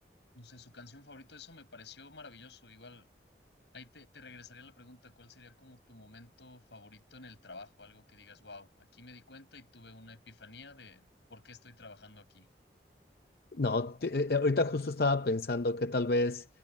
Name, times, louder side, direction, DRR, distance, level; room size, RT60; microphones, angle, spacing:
voice 1, 0.3-3.1 3.7-12.5, left 3 dB, 90° left, 6.8 m, -52 dB
voice 2, 13.5-16.5, left 2 dB, 55° left, 0.6 m, -29 dB
head